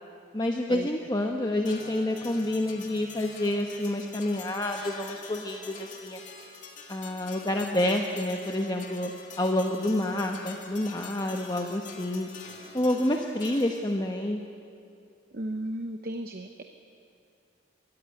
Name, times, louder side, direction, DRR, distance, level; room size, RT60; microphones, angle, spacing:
voice 1, 0.3-6.2 6.9-9.1 9.4-12.3 12.7-14.4, left 1 dB, 20° left, 2 dB, 1.0 m, -28 dB
sound 1, 1.6-14.1, left 5 dB, 40° left, 2.2 m, -46 dB
voice 2, 15.3-16.6, right 1 dB, 50° right, 6 dB, 0.9 m, -34 dB
22.5 x 15.0 x 9.5 m, 2.5 s
head